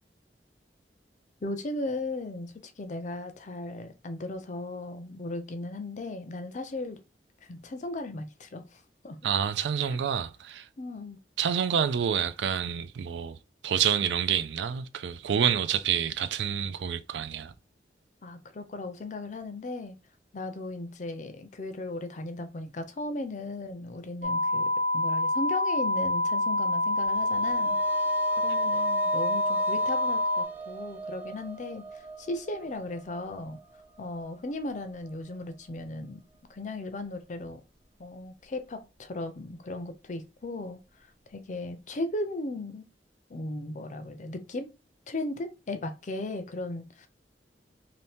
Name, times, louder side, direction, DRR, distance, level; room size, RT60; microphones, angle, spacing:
voice 1, 1.4-7.0 7.5-9.2 9.9-10.0 10.8-11.2 18.2-19.9 20.3-24.7 24.9-27.8 28.4-33.6 34.0-36.2 36.5-37.6 38.0-40.8 41.3-42.9 43.3-44.7 45.1-47.1, left 2 dB, 45° left, 0.5 m, -36 dB
voice 2, 9.2-10.7 11.4-13.4 13.6-17.5, right 8 dB, 75° right, 0.4 m, -28 dB
sound 1, 24.2-30.5, left 1 dB, 50° right, 0.8 m, -27 dB
sound 2, 26.9-35.5, right 5 dB, 10° right, 0.6 m, -39 dB
2.8 x 2.7 x 3.4 m
head